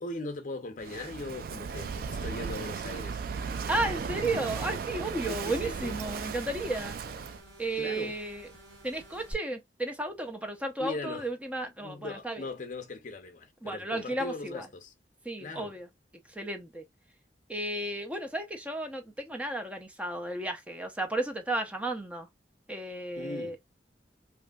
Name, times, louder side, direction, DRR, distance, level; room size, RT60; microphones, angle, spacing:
voice 1, 0.0-3.3 5.3-5.9 7.8-8.1 10.8-11.3 11.8-14.9 15.4-15.7 23.2-23.6, left 2 dB, 45° left, 0.7 m, -39 dB
Walk footsteps / Wind / Waves surf, 0.8-7.4, right 5 dB, 55° right, 0.3 m, -36 dB
sound 1, 3.3-9.3, right 1 dB, 85° right, 1.7 m, -52 dB
voice 2, 3.7-7.0 7.6-8.5 8.8-12.5 13.6-14.7 15.2-15.9 16.3-16.9 17.5-22.3 22.7-23.6, right 1 dB, 5° right, 0.5 m, -33 dB
3.1 x 2.6 x 2.3 m
head